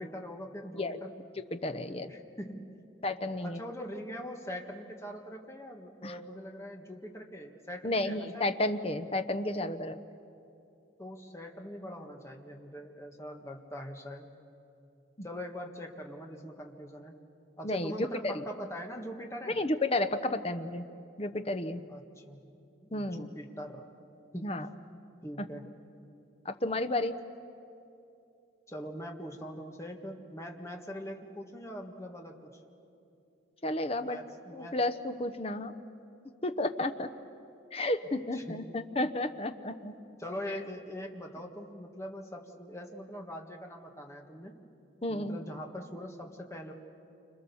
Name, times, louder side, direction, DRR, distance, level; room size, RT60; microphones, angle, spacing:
voice 1, 0.0-1.2 2.1-2.8 3.4-8.5 11.0-14.3 15.2-17.2 17.6-19.6 21.9-22.5 22.8-23.9 24.3-24.5 25.2-25.7 28.7-32.6 34.0-34.7 38.3-38.6 40.2-44.5 45.1-46.7, equal, 15° left, 1 dB, 1.8 m, -42 dB
voice 2, 1.4-2.1 3.0-3.6 6.0-6.2 7.8-10.0 17.6-17.9 18.2-18.4 19.5-20.9 21.2-21.8 22.9-23.3 24.4-24.7 26.4-27.2 33.6-34.2 34.5-35.7 36.4-37.1 37.7-39.9 45.0-45.4, left 1 dB, 30° left, 9 dB, 0.9 m, -32 dB
29.5 x 26.5 x 7.1 m, 2.7 s
head